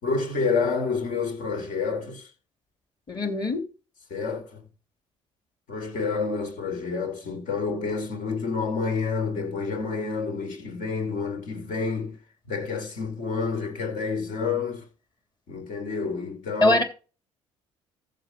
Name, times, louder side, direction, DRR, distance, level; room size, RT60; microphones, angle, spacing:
voice 1, 0.0-2.3 4.1-4.6 5.7-12.2 12.5-14.8 15.5-16.8, left 4 dB, 60° left, 4.1 m, -29 dB
voice 2, 3.1-3.6 16.6-16.8, left 1 dB, 30° left, 3.0 m, -22 dB
14.5 x 5.9 x 4.5 m
hypercardioid pair, 55°, 15 cm